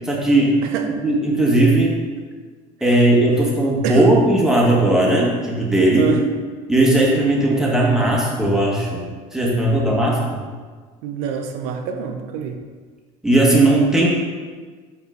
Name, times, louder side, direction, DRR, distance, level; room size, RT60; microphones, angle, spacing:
voice 1, 0.0-0.6 1.0-2.0 2.8-6.1 6.7-9.0 9.3-10.4 13.2-14.1, right 1 dB, 5° right, -3 dB, 1.4 m, -17 dB
voice 2, 11.0-12.6, right 7 dB, 80° right, 4 dB, 0.6 m, -25 dB
5.4 x 4.8 x 3.8 m, 1.5 s
supercardioid pair, 105°, 16 cm